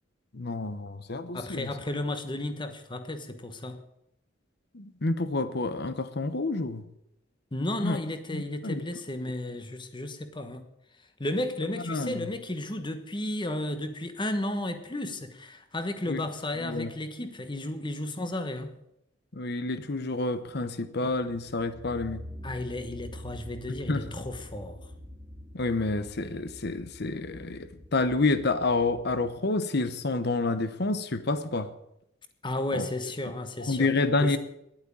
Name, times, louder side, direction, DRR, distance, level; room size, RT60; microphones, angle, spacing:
voice 1, 0.3-1.7 4.7-6.8 7.8-8.0 8.3-8.8 11.9-12.3 16.1-16.2 16.6-16.9 19.3-22.2 23.9-24.0 25.5-31.7 32.7-32.9 33.6-34.4, left 3 dB, 55° left, 0.9 m, -29 dB
voice 2, 1.3-3.8 7.5-10.7 11.2-18.8 22.4-24.8 32.4-33.9 34.2-34.4, left 1 dB, 25° left, 1.2 m, -33 dB
sound 1, 21.1-29.3, equal, 10° right, 2.2 m, -46 dB
11.0 x 8.8 x 8.7 m
head